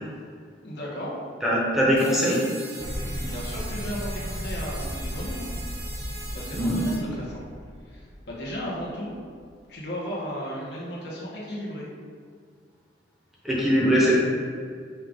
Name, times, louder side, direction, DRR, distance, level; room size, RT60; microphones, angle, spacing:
voice 1, 0.6-1.1 3.2-5.5 6.3-7.4 7.9-9.1 9.7-11.9, equal, 60° left, -5 dB, 1.1 m, -35 dB
voice 2, 1.4-2.4 6.5-6.8 13.4-14.2, equal, ahead, -6 dB, 0.8 m, -21 dB
sound 1, 2.0-7.0, right 2 dB, 50° right, 0.9 m, -40 dB
sound 2, 2.8-9.3, equal, 15° left, 0.3 m, -35 dB
5.4 x 2.4 x 3.5 m, 2.1 s
head